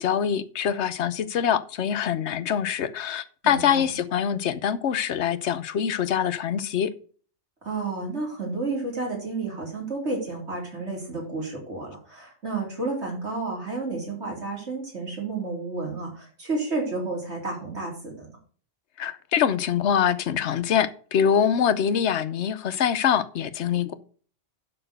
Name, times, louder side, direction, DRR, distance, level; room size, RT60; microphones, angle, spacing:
voice 1, 0.0-6.9 19.0-23.9, left 8 dB, 70° left, 1.1 m, -24 dB
voice 2, 3.4-3.9 7.6-18.3, right 3 dB, 65° right, 3.8 m, -31 dB
12.0 x 4.4 x 6.6 m
omnidirectional pair, 1.2 m